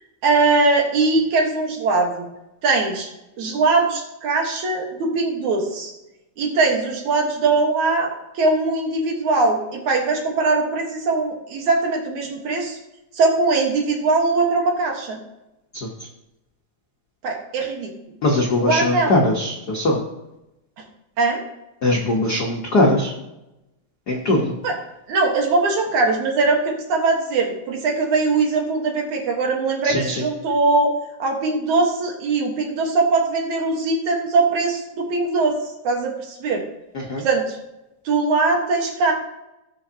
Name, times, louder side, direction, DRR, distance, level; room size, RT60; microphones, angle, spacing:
voice 1, 0.2-2.3 2.6-3.1 3.4-5.9 6.4-12.8 13.1-15.2 17.2-18.2 18.6-19.2 21.2-21.4 24.6-24.8 25.1-30.9 31.2-35.6 35.8-36.6 37.2-37.6 38.1-39.1, right 3 dB, 65° right, 1 dB, 2.7 m, -21 dB
voice 2, 18.2-20.0 21.8-23.1 24.1-24.5 29.8-30.2 36.9-37.2, left 1 dB, 90° left, -2 dB, 0.8 m, -20 dB
19.0 x 6.3 x 2.8 m, 0.93 s
omnidirectional pair, 3.8 m